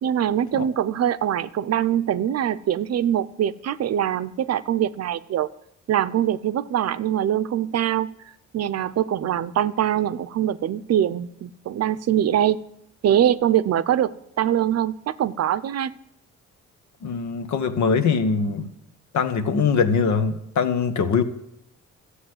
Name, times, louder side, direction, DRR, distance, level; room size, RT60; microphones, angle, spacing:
voice 1, 0.0-5.5 5.9-8.1 8.5-12.6 13.0-14.1 14.4-15.9, right 10 dB, 55° right, 0.6 m, -23 dB
voice 2, 17.0-18.7 19.1-21.2, left 5 dB, 70° left, 1.3 m, -22 dB
12.5 x 8.3 x 7.9 m
cardioid pair, 90°, 30 cm